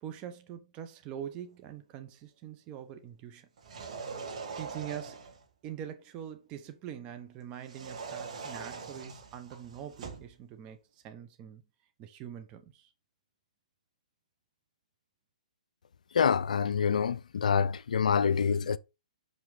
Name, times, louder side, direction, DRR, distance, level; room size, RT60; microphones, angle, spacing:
voice 1, 0.0-3.5 4.6-5.2 5.6-11.6 12.0-12.9, right 10 dB, 25° right, 1.0 m, -43 dB
sound 1, 3.6-5.4 7.6-10.3, right 5 dB, 55° right, 2.9 m, -42 dB
voice 2, 16.1-18.8, left 6 dB, 75° left, 0.5 m, -26 dB
6.1 x 5.9 x 3.9 m
hypercardioid pair, 140°, 4 cm